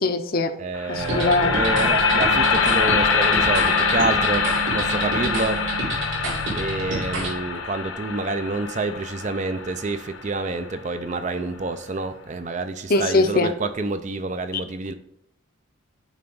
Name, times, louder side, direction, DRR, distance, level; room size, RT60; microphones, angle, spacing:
voice 1, 0.0-0.5 0.9-1.6 12.9-13.5, left 2 dB, 45° left, 0.6 m, -21 dB
voice 2, 0.6-5.7 6.5-14.9, right 3 dB, 35° right, 0.4 m, -28 dB
sound 1, 0.7-10.9, left 5 dB, 75° left, 0.9 m, -24 dB
sound 2, 1.0-7.3, right 3 dB, 65° right, 2.7 m, -29 dB
9.0 x 3.4 x 5.4 m
head